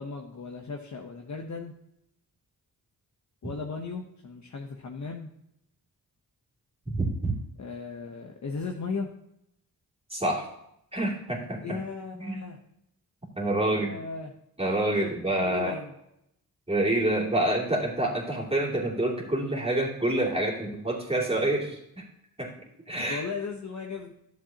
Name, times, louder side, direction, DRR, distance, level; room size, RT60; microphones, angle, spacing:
voice 1, 0.0-1.7 3.4-5.3 7.6-9.1 11.6-12.6 13.7-14.3 14.9-15.1 15.4-15.9 23.1-24.1, left 4 dB, 50° left, 1 dB, 0.9 m, -36 dB
voice 2, 6.9-7.3 10.1-10.5 10.9-11.8 12.2-12.4 13.4-14.0 14.6-15.7 16.7-22.0 22.4-22.5 22.9-23.2, right 1 dB, 15° right, -3 dB, 2.7 m, -27 dB
11.5 x 7.3 x 2.8 m, 0.79 s
cardioid pair, 70°, 38 cm